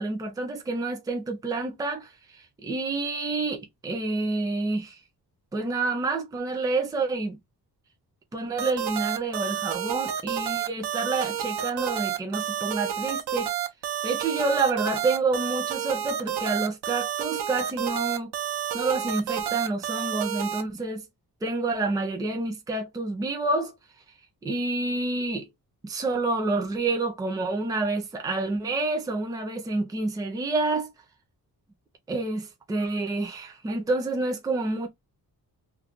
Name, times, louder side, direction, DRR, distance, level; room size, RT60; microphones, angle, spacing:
voice 1, 0.0-2.1 2.6-5.0 5.5-7.4 8.3-13.5 14.0-18.3 18.7-21.0 21.4-23.7 24.4-25.5 25.8-30.9 32.1-34.9, right 3 dB, 10° right, 0.4 m, -28 dB
sound 1, 8.6-20.6, right 10 dB, 85° right, 0.6 m, -30 dB
2.3 x 2.1 x 3.6 m
wide cardioid pair, 175°, 38 cm